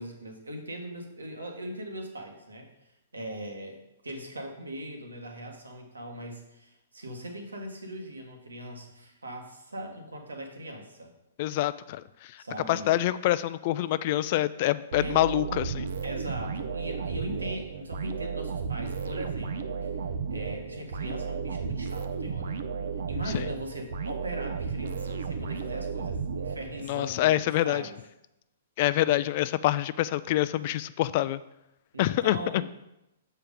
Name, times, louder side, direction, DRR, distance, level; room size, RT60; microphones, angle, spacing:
voice 1, 0.0-2.7 3.1-11.1 12.4-13.0 15.0-15.2 16.0-19.9 20.3-22.6 23.1-28.0 31.9-32.6, right 1 dB, 85° right, 3 dB, 1.4 m, -40 dB
voice 2, 11.4-12.0 12.7-15.8 23.3-23.4 26.9-27.8 28.8-31.4 32.0-32.6, left 14 dB, 45° left, 16 dB, 0.3 m, -26 dB
sound 1, 14.9-27.1, right 5 dB, 60° right, 0.6 m, -34 dB
6.9 x 4.5 x 5.2 m, 0.87 s
hypercardioid pair, 120°, 0 cm